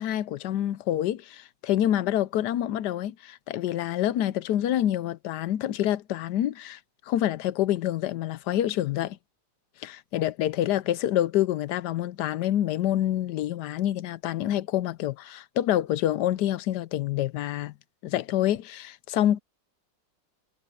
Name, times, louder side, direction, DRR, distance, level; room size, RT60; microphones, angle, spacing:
voice 1, 0.0-6.8 7.1-9.2 9.8-17.7 18.0-19.4, left 12 dB, 70° left, 1.1 m, -27 dB
omnidirectional pair, 2.0 m